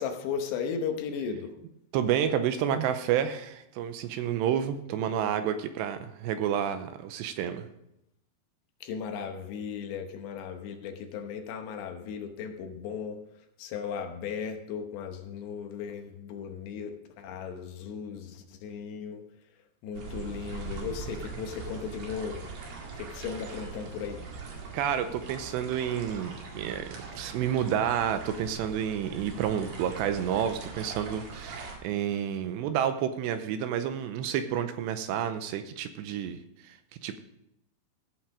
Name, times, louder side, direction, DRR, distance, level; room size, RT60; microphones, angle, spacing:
voice 1, 0.0-1.6 8.8-13.2 13.6-16.9 17.2-19.2 19.8-22.5 22.9-24.2, left 6 dB, 75° left, 5 dB, 3.2 m, -36 dB
voice 2, 1.9-7.7 24.7-36.8 37.0-37.2, right 9 dB, 85° right, 9 dB, 2.7 m, -30 dB
sound 1, 19.9-31.8, right 4 dB, 65° right, 3.9 m, -41 dB
16.0 x 6.0 x 4.8 m, 0.80 s
omnidirectional pair, 5.2 m